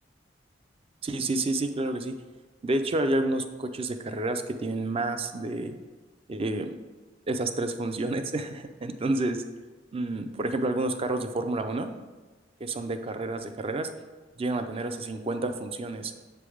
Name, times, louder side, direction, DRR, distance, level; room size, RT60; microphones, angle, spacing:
voice 1, 1.0-2.1 2.6-5.8 6.3-6.7 7.3-9.4 9.9-11.9 12.6-13.9 14.4-16.1, right 2 dB, 30° right, 8 dB, 0.4 m, -29 dB
7.6 x 3.4 x 4.9 m, 1.3 s
head